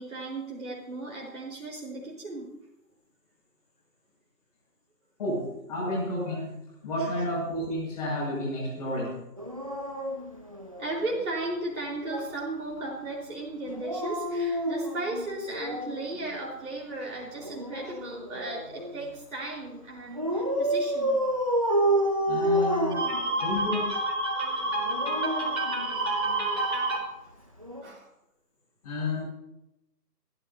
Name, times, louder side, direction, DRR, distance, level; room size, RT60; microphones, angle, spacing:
voice 1, 0.0-2.5 7.0-7.1 10.8-21.2 22.5-27.1 27.8-28.1, right 2 dB, 55° right, -4 dB, 4.6 m, -33 dB
voice 2, 5.2-9.3 22.3-23.0 23.4-23.8 28.8-29.2, left 1 dB, 25° left, -4 dB, 6.8 m, -31 dB
Dog, 9.4-11.2 13.7-16.1 17.3-19.0 20.2-23.7 24.7-26.3 27.6-27.8, right 1 dB, 20° right, 0.8 m, -29 dB
28.0 x 11.0 x 2.8 m, 0.89 s
figure-of-eight pair, 160°, 49 cm